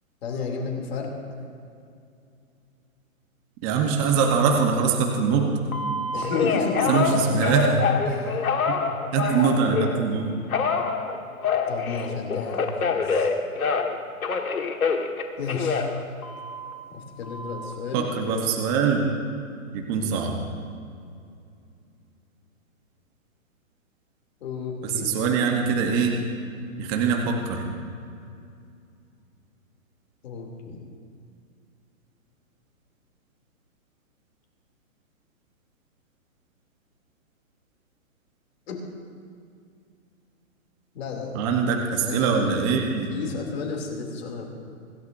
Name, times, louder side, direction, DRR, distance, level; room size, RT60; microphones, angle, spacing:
voice 1, 0.2-1.2 6.1-7.5 8.0-8.5 11.7-13.3 15.4-15.9 16.9-18.0 24.4-25.2 30.2-30.8 38.7-38.8 40.9-41.4 42.0-42.5 43.1-44.5, left 4 dB, 45° left, 0 dB, 2.9 m, -32 dB
voice 2, 3.6-5.5 6.9-7.8 8.7-8.8 9.1-10.3 17.9-19.1 19.7-20.4 24.8-26.2 26.8-27.6 41.3-43.1, right 6 dB, 15° right, 1 dB, 0.9 m, -23 dB
Telephone, 5.7-10.0 10.5-14.0 14.2-16.7 17.2-17.7, left 5 dB, 80° left, 1.7 m, -26 dB
25.0 x 13.0 x 2.6 m, 2.4 s
hypercardioid pair, 155°, 42 cm